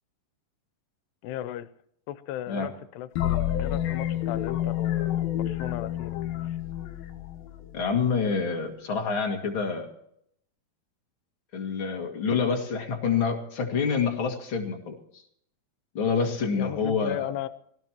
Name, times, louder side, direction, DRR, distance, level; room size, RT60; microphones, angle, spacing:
voice 1, 1.2-1.7 2.1-6.6 16.5-17.5, left 13 dB, 85° left, 14 dB, 2.9 m, -36 dB
sound 1, 3.2-7.8, left 12 dB, 70° left, 2.8 m, -29 dB
voice 2, 7.7-9.9 11.5-15.0 15.9-17.3, left 5 dB, 40° left, 2 dB, 2.2 m, -27 dB
24.0 x 17.5 x 3.0 m, 0.71 s
omnidirectional pair, 4.6 m